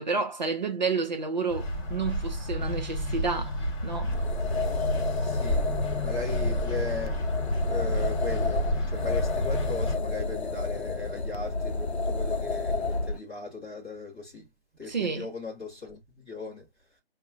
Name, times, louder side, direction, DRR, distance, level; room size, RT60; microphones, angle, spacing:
voice 1, 0.0-3.6 3.8-4.2 14.9-15.3, right 4 dB, 45° right, 0.7 m, -30 dB
sound 1, 1.5-10.0, equal, 30° left, 1.2 m, -30 dB
sound 2, 4.0-13.2, left 3 dB, 85° left, 0.6 m, -30 dB
voice 2, 5.2-5.7 6.0-7.2 7.7-14.5 14.8-16.7, left 4 dB, 10° left, 0.7 m, -38 dB
5.1 x 2.1 x 2.5 m
figure-of-eight pair, 150°, 32 cm